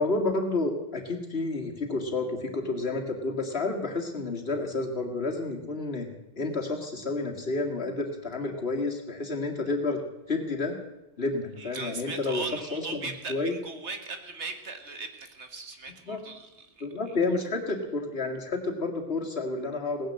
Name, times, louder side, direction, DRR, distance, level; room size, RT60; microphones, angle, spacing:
voice 1, 0.0-6.1 6.4-10.0 10.3-10.8 11.2-12.4 12.7-13.0 13.3-13.6 16.0-16.2 16.8-20.1, left 3 dB, 60° left, 1 dB, 2.4 m, -30 dB
voice 2, 11.6-16.9, right 4 dB, 75° right, 6 dB, 2.0 m, -39 dB
18.0 x 10.5 x 7.6 m, 0.94 s
omnidirectional pair, 1.2 m